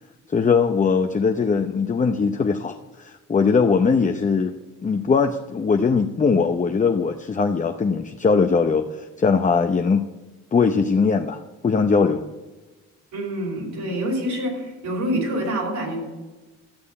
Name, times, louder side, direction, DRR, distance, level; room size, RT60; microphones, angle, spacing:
voice 1, 0.3-4.5 4.8-10.1 10.5-12.2, left 5 dB, 25° left, 6 dB, 0.7 m, -20 dB
voice 2, 13.1-16.0, right 1 dB, 70° right, 0 dB, 4.6 m, -26 dB
13.5 x 6.7 x 8.5 m, 1.2 s
cardioid pair, 90°, 30 cm